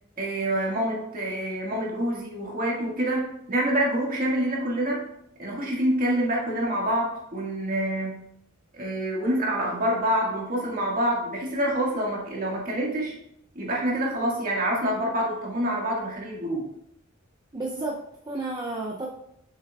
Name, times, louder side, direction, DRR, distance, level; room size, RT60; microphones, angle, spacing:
voice 1, 0.2-5.0 5.4-8.2 8.7-13.1 13.6-16.7, right 1 dB, 45° right, -3 dB, 1.8 m, -26 dB
voice 2, 17.5-19.1, right 2 dB, 20° right, -2 dB, 0.5 m, -32 dB
6.9 x 6.5 x 2.4 m, 0.78 s
head